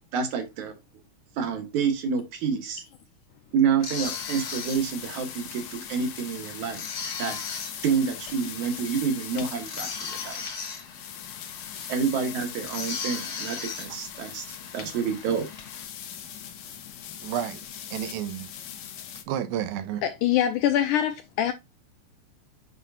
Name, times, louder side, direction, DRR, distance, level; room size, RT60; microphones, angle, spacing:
voice 1, 0.1-0.7 1.4-2.8 3.5-6.8 7.2-7.4 7.8-10.4 11.9-14.4 14.7-15.5, right 6 dB, 60° right, 2.5 m, -28 dB
sound 1, 3.8-15.8, left 5 dB, 50° left, 1.9 m, -39 dB
sound 2, 4.0-19.2, left 9 dB, 70° left, 1.6 m, -41 dB
voice 2, 17.2-18.5 19.3-20.1, right 10 dB, 85° right, 2.7 m, -31 dB
voice 3, 20.0-21.5, left 11 dB, 85° left, 1.8 m, -24 dB
8.0 x 5.5 x 2.4 m
omnidirectional pair, 4.2 m